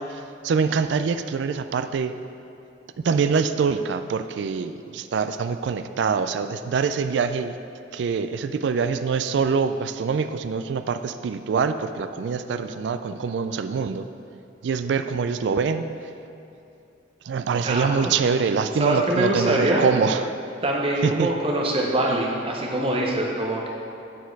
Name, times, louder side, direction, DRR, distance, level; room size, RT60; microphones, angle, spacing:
voice 1, 0.0-2.1 3.0-7.6 7.9-14.1 14.6-16.1 17.2-20.3 21.0-21.3, right 5 dB, 70° right, 10 dB, 0.3 m, -24 dB
voice 2, 17.6-18.1 18.8-19.8 20.6-23.7, right 1 dB, 30° right, -1 dB, 0.9 m, -24 dB
9.3 x 4.4 x 4.6 m, 2.7 s
head